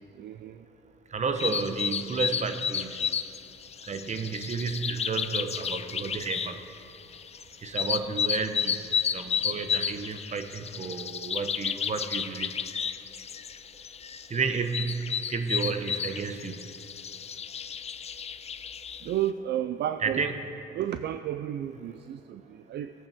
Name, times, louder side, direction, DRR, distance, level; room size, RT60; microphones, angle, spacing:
voice 1, 0.2-0.7 19.0-20.2 20.7-22.9, right 11 dB, 60° right, 10 dB, 0.4 m, -32 dB
voice 2, 1.1-3.0 3.9-6.6 7.6-8.8 9.1-12.6 14.3-16.6 20.0-20.3, right 5 dB, 35° right, 8 dB, 0.9 m, -31 dB
sound 1, 1.4-19.1, left 7 dB, 35° left, 0.4 m, -32 dB
17.5 x 8.5 x 3.5 m, 2.6 s
cardioid pair, 90°, 20 cm